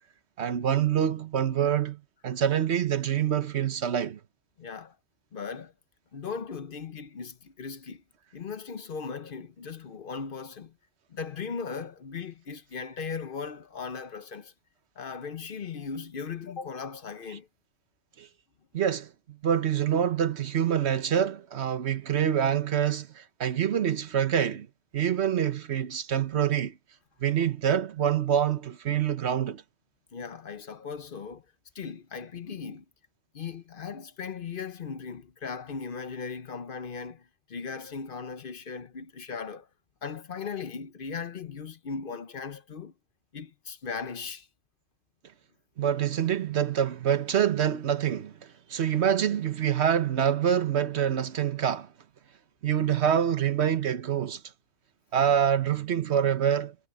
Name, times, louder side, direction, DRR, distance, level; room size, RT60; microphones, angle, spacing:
voice 1, 0.4-4.2 18.2-18.3 18.7-24.7 24.9-26.7 27.2-29.6 45.8-51.9 52.6-54.4 55.1-56.7, right 9 dB, 70° right, 1.2 m, -26 dB
voice 2, 4.6-5.0 5.3-5.7 6.1-8.0 8.3-10.8 11.1-14.5 15.0-17.5 30.1-31.4 31.7-32.8 33.3-39.7 40.0-42.9 43.3-44.5, left 5 dB, 55° left, 1.0 m, -38 dB
omnidirectional pair, 1.2 m